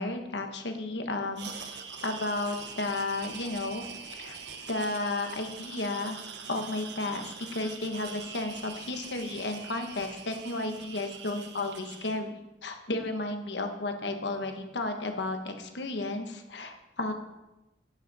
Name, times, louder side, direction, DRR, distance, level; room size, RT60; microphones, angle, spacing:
voice 1, 0.0-1.5 2.0-4.4 4.7-6.2 6.5-17.1, left 2 dB, 80° left, 5 dB, 1.2 m, -33 dB
sound 1, 1.3-12.2, right 6 dB, 75° right, 1.1 m, -43 dB
9.7 x 9.6 x 4.2 m, 0.99 s
head